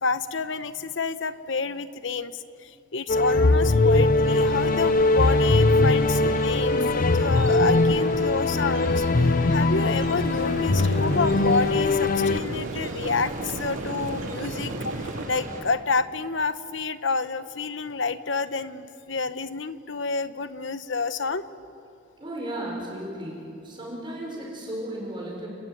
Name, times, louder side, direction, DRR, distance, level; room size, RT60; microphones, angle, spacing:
voice 1, 0.0-21.5, left 4 dB, 65° left, 12 dB, 1.0 m, -29 dB
sound 1, 3.1-12.4, left 2 dB, 45° left, 0.6 m, -21 dB
sound 2, 4.2-15.6, right 1 dB, 45° right, 7.6 m, -37 dB
sound 3, 10.1-15.3, right 3 dB, 70° right, 0.8 m, -36 dB
voice 2, 22.2-23.4 23.6-25.5, right 1 dB, 25° right, -3 dB, 6.0 m, -34 dB
30.0 x 20.0 x 9.4 m, 2.7 s
head